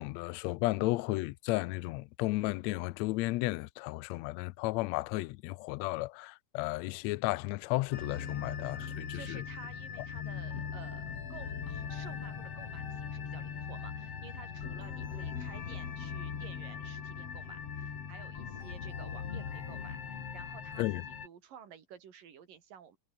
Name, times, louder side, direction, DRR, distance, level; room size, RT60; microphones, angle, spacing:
voice 1, 0.0-9.4 10.2-10.3 20.8-21.0, left 20 dB, 85° left, 1.5 m, -33 dB
sound 1, 7.9-21.3, left 7 dB, 50° left, 3.4 m, -40 dB
voice 2, 9.1-23.0, right 8 dB, 85° right, 4.5 m, -53 dB
omnidirectional pair, 3.8 m